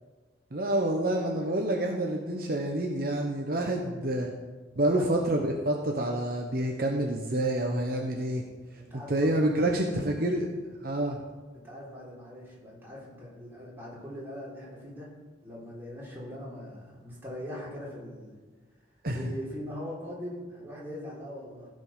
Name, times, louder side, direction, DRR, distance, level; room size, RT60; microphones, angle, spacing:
voice 1, 0.5-4.3 4.8-8.4 9.1-10.5 10.8-11.2 19.0-19.3, right 1 dB, 55° right, 1 dB, 1.0 m, -28 dB
voice 2, 8.8-9.3 9.6-10.3 11.5-15.1 15.4-18.4 19.1-21.7, equal, 10° right, -7 dB, 3.5 m, -41 dB
15.5 x 5.4 x 5.6 m, 1.3 s
head